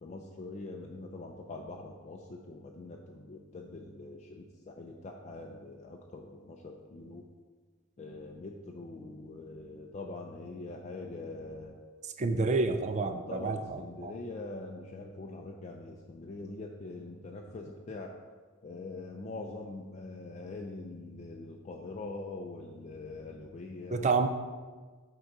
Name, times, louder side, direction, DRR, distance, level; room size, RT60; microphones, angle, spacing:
voice 1, 0.0-7.2 8.0-11.7 12.3-12.4 12.9-18.1 18.6-24.1, left 2 dB, 35° left, 1 dB, 0.4 m, -43 dB
voice 2, 12.2-14.1 23.9-24.3, right 4 dB, 35° right, 8 dB, 0.4 m, -29 dB
6.4 x 3.8 x 4.6 m, 1.4 s
head